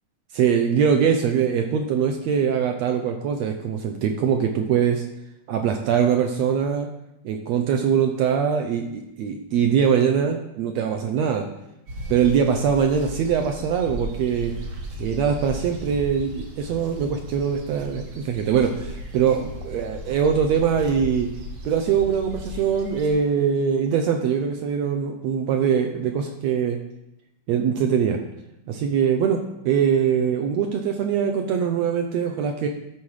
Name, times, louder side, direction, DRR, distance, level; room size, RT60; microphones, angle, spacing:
voice 1, 0.3-5.0 5.5-6.9 7.2-11.4 12.1-14.5 15.0-21.3 21.6-26.8 27.5-28.2 28.7-32.7, right 7 dB, 75° right, 4 dB, 1.6 m, -22 dB
sound 1, 11.9-23.1, equal, 55° right, 2.3 m, -36 dB
12.5 x 4.4 x 4.8 m, 0.86 s
omnidirectional pair, 3.6 m